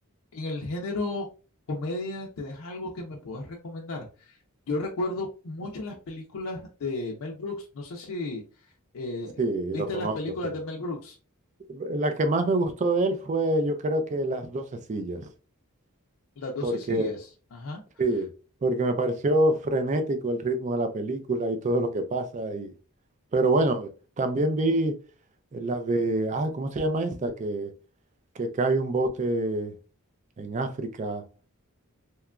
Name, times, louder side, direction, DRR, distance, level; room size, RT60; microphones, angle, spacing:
voice 1, 0.3-1.3 1.7-4.4 4.7-8.4 8.9-9.4 9.7-11.2 16.4-17.8, left 2 dB, 70° left, 0.4 m, -34 dB
voice 2, 9.4-10.2 10.4-10.5 11.7-15.2 16.6-17.1 18.0-18.3 18.6-22.7 23.3-23.9 24.2-25.0 25.5-27.7 28.4-29.7 30.4-31.2, right 2 dB, 35° right, 0.4 m, -26 dB
2.9 x 2.2 x 2.3 m
head